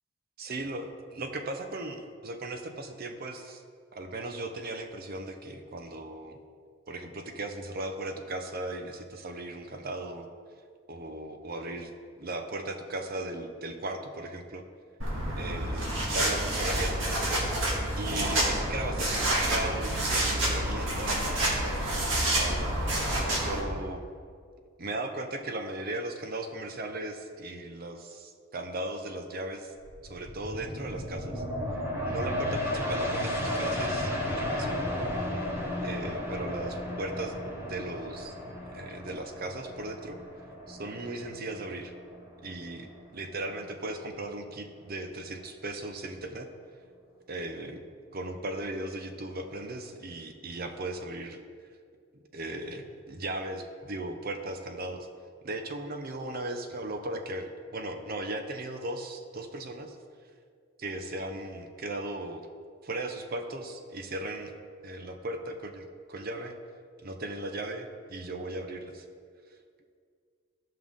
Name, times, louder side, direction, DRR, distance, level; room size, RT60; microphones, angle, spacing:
voice 1, 0.4-3.6 3.9-6.4 6.9-10.3 10.9-11.9 12.2-14.6 15.4-17.2 18.0-22.8 23.4-24.0 24.8-29.7 30.0-31.4 32.0-34.9 35.8-38.3 38.7-40.2 40.7-41.9 42.4-46.5 47.3-47.8 48.1-51.4 52.3-55.1 55.4-60.0 60.8-62.5 62.8-64.5 64.8-66.5 67.0-69.0, right 2 dB, 50° right, 6 dB, 0.8 m, -37 dB
sound 1, 15.0-23.6, right 1 dB, 80° right, 2.0 m, -28 dB
sound 2, 29.8-43.1 43.5-43.6, left 1 dB, 15° right, 1.2 m, -34 dB
14.5 x 5.6 x 3.7 m, 2.1 s
head